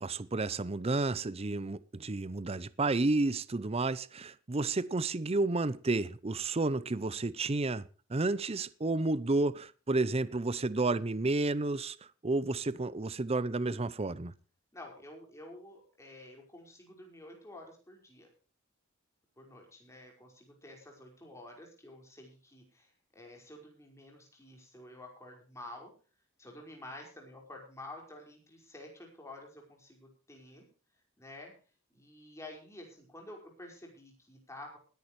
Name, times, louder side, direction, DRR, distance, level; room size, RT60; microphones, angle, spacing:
voice 1, 0.0-12.0 12.2-14.3, right 2 dB, 30° right, 0.6 m, -31 dB
voice 2, 14.7-18.3 19.4-25.9 26.4-30.7 31.2-31.5 31.9-34.8, left 1 dB, 15° left, 5.2 m, -50 dB
20.5 x 10.5 x 3.2 m
head